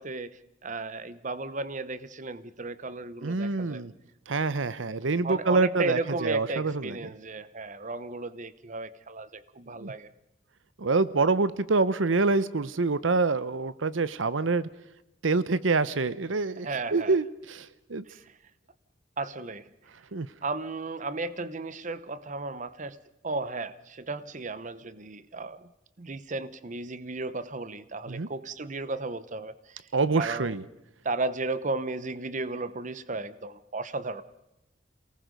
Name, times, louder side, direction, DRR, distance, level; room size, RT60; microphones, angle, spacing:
voice 1, 0.0-3.8 5.2-10.1 16.6-17.2 18.1-18.3 19.2-19.6 20.4-23.0 23.2-25.7 26.0-29.9 30.2-30.6 31.0-34.2, right 3 dB, 40° right, 15 dB, 0.9 m, -34 dB
voice 2, 3.2-3.9 4.3-7.0 9.8-9.9 10.8-14.7 15.2-18.0 20.1-20.3 28.1-28.3 29.9-30.6, right 3 dB, 90° right, 16 dB, 0.8 m, -26 dB
28.0 x 19.0 x 5.3 m, 0.87 s
head